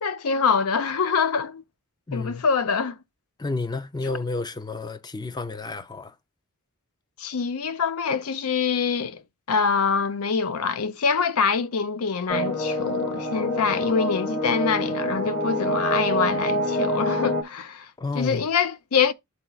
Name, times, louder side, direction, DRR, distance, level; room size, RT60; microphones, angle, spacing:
voice 1, 0.0-1.6 2.1-3.0 7.2-9.2 9.5-17.9 18.1-19.1, left 5 dB, 80° left, 0.6 m, -25 dB
voice 2, 2.1-2.4 3.4-6.1 18.0-18.5, left 3 dB, 20° left, 0.4 m, -31 dB
sound 1, 12.3-17.4, equal, 45° left, 1.4 m, -26 dB
11.0 x 3.9 x 2.3 m
head